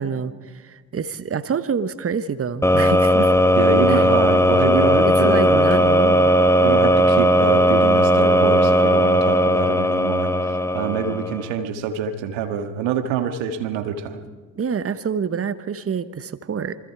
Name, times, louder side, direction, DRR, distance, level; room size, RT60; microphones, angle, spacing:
voice 1, 0.0-3.3 3.9-4.0 4.9-6.3 14.6-16.8, right 6 dB, 30° right, 13 dB, 1.2 m, -27 dB
sound 1, 2.6-11.5, equal, 5° left, 1.3 m, -17 dB
voice 2, 3.6-5.7 6.6-14.2, right 7 dB, 65° right, 7 dB, 1.9 m, -26 dB
28.0 x 20.5 x 4.7 m, 1.5 s
hypercardioid pair, 55°, 49 cm